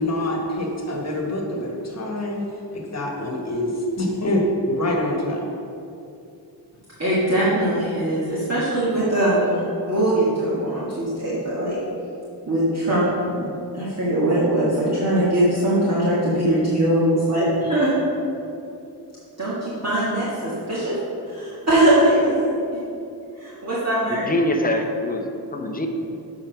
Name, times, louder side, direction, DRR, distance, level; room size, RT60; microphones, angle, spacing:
voice 1, 0.0-2.4 2.7-5.5, left 1 dB, 35° left, 0 dB, 1.4 m, -25 dB
voice 2, 7.0-11.8 12.5-18.0 19.4-21.0 21.3-22.5 23.3-24.3, right 1 dB, 35° right, -9 dB, 1.8 m, -21 dB
voice 3, 24.1-25.9, left 1 dB, 20° left, 3 dB, 0.8 m, -24 dB
7.4 x 4.8 x 5.7 m, 2.7 s
wide cardioid pair, 100°, 43 cm